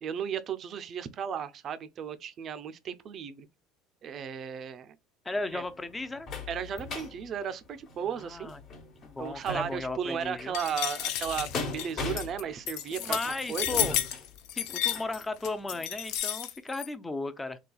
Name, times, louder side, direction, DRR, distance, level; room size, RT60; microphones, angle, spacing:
voice 1, 0.0-3.5 4.0-5.0 5.5-5.6 6.5-8.5 9.2-13.8, right 8 dB, 45° right, 0.4 m, -35 dB
voice 2, 5.2-6.3 8.2-8.6 9.0-10.6 13.0-13.9 14.5-17.6, left 2 dB, 15° left, 0.5 m, -35 dB
sound 1, 5.3-15.1 15.7-15.8 16.2-16.3, left 3 dB, 45° left, 1.1 m, -40 dB
sound 2, 10.5-16.9, left 11 dB, 70° left, 0.5 m, -32 dB
3.9 x 2.3 x 2.3 m
supercardioid pair, 105°, 0 cm